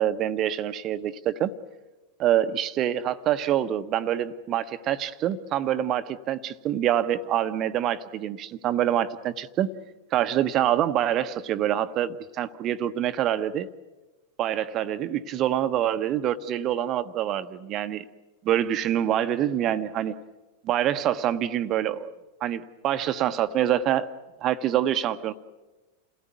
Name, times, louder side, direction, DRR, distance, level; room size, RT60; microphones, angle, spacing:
voice 1, 0.0-1.5 2.2-9.7 10.1-13.7 14.4-18.0 18.4-20.2 20.6-22.1 22.4-24.1 24.4-25.3, right 11 dB, 35° right, 12 dB, 1.0 m, -26 dB
29.0 x 17.5 x 9.4 m, 1.1 s
figure-of-eight pair, 90°, 0 cm